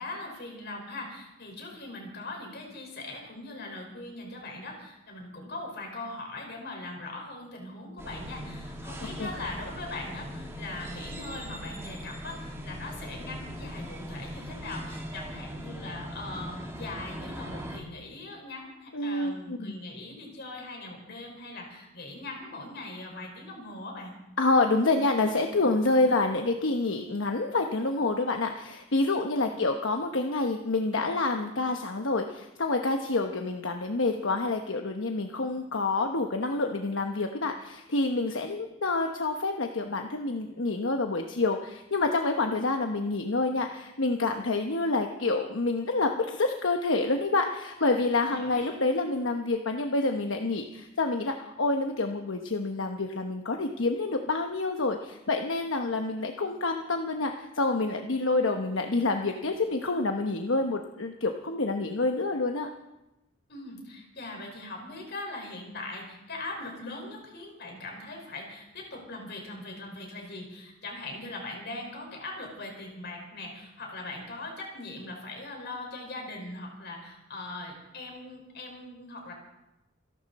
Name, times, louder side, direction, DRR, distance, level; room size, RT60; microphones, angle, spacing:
voice 1, 0.0-24.2 29.3-29.5 47.8-48.8 63.5-79.3, left 2 dB, 60° left, 1 dB, 5.1 m, -41 dB
sound 1, 8.0-17.8, equal, 15° right, 2.3 m, -40 dB
voice 2, 18.9-19.8 24.4-62.7, left 3 dB, 80° left, 4 dB, 1.0 m, -28 dB
27.0 x 12.0 x 4.2 m, 0.95 s
head